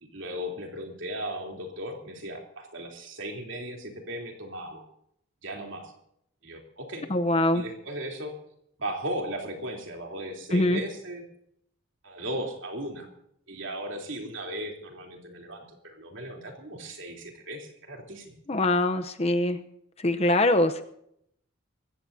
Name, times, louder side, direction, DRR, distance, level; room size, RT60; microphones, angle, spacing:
voice 1, 0.1-4.9 5.4-5.9 6.4-7.1 7.5-8.4 8.8-11.2 12.0-13.1 13.5-18.3, right 1 dB, 60° right, 2 dB, 3.4 m, -36 dB
voice 2, 7.1-7.6 10.5-10.8 18.5-19.6 20.0-20.8, left 1 dB, 30° left, 9 dB, 0.8 m, -23 dB
23.0 x 15.5 x 2.8 m, 0.72 s
head